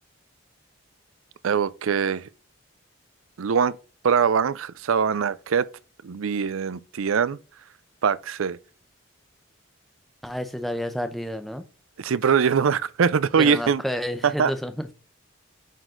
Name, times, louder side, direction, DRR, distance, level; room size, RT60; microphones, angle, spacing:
voice 1, 1.4-2.3 3.4-3.7 4.0-5.7 6.0-7.4 8.0-8.6 12.0-13.8 14.2-14.5, right 6 dB, 80° right, 0.5 m, -22 dB
voice 2, 10.2-11.6 13.4-14.9, equal, ahead, 0.8 m, -30 dB
9.1 x 4.1 x 3.8 m
head